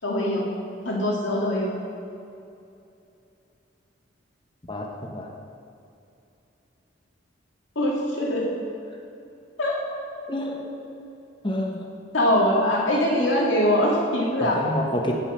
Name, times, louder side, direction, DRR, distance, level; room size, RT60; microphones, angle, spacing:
voice 1, 0.0-0.5 0.8-1.7 7.8-8.5 9.6-9.8 12.1-14.6, left 1 dB, 85° left, -3 dB, 2.2 m, -22 dB
voice 2, 4.7-5.3 10.3-10.9 11.4-11.9 14.4-15.1, left 1 dB, 25° left, 1 dB, 0.9 m, -29 dB
15.0 x 5.1 x 5.5 m, 2.7 s
head